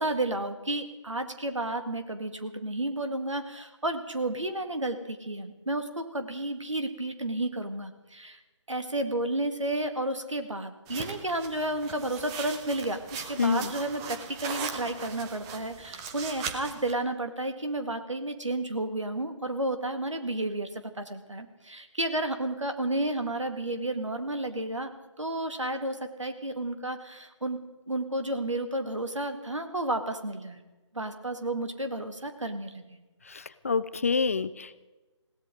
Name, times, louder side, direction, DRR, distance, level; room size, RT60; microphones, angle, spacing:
voice 1, 0.0-8.4 8.7-24.9 25.2-27.6 27.9-30.6 30.9-32.8, right 1 dB, 75° right, 7 dB, 2.1 m, -32 dB
sound 1, 10.9-16.9, right 6 dB, 10° right, 0.6 m, -39 dB
voice 2, 13.4-13.7 33.3-34.9, left 5 dB, 30° left, 15 dB, 0.4 m, -27 dB
20.5 x 17.0 x 3.9 m, 1.1 s
figure-of-eight pair, 150°, 16 cm